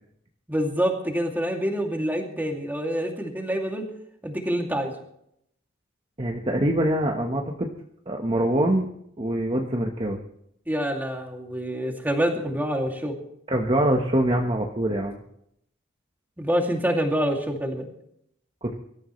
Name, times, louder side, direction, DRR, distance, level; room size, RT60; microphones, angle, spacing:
voice 1, 0.5-3.9 4.2-4.9 10.7-13.2 16.4-17.9, equal, 10° right, 2 dB, 2.5 m, -26 dB
voice 2, 6.2-7.7 8.1-8.9 9.2-10.2 13.5-15.2 18.6-18.7, right 1 dB, 25° right, 1 dB, 1.2 m, -24 dB
24.0 x 13.5 x 3.2 m, 0.73 s
head